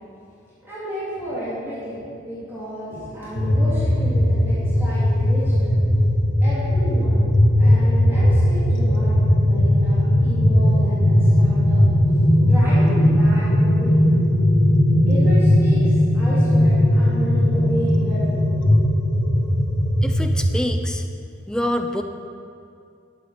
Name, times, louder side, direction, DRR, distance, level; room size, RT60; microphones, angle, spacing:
voice 1, 0.6-5.7 6.4-7.2 7.6-11.8 12.4-14.0 15.1-15.8 16.1-18.4, equal, 10° right, -12 dB, 2.9 m, -32 dB
sound 1, 3.4-20.5, left 1 dB, 75° left, 1.4 m, -18 dB
voice 2, 20.0-21.0 21.5-22.0, left 1 dB, 5° left, 5 dB, 0.4 m, -26 dB
12.0 x 7.7 x 5.0 m, 2.5 s
head